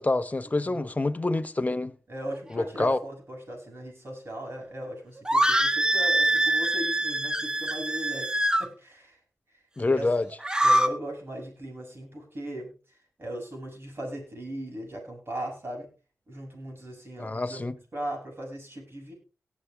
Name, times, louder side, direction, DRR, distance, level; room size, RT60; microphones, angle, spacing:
voice 1, 0.0-1.9 2.5-3.0 9.8-10.3 17.2-17.8, left 2 dB, 25° left, 1.0 m, -26 dB
voice 2, 0.6-0.9 2.1-9.2 9.5-9.6 9.9-10.1 10.6-15.9 16.3-17.6 17.9-19.1, equal, 45° right, 7.1 m, -38 dB
sound 1, 5.2-8.7 10.3-10.9, right 1 dB, 15° right, 1.1 m, -24 dB
18.5 x 7.4 x 3.5 m
cardioid pair, 55°, 6 cm